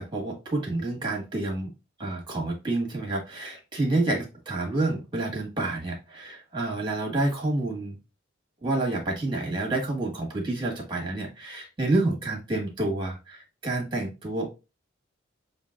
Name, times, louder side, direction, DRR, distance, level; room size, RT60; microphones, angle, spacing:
voice 1, 0.0-1.7 2.0-8.0 8.6-14.5, right 2 dB, 25° right, 1 dB, 1.5 m, -29 dB
7.1 x 2.6 x 2.4 m, 0.28 s
head